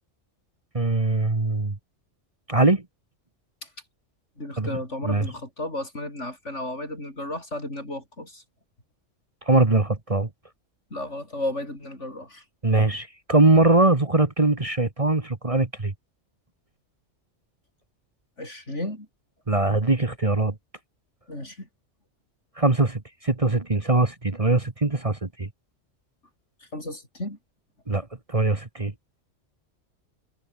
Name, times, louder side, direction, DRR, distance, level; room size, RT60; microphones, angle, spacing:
voice 1, 0.7-1.8 2.5-2.8 4.6-4.7 5.0-5.3 9.5-10.3 12.6-15.9 19.5-20.5 22.6-25.5 27.9-28.9, right 2 dB, 30° right, 1.6 m, -22 dB
voice 2, 4.4-8.4 10.9-12.4 18.4-19.1 21.3-21.7 26.7-27.4, left 1 dB, 70° left, 8.4 m, -33 dB
omnidirectional pair, 1.3 m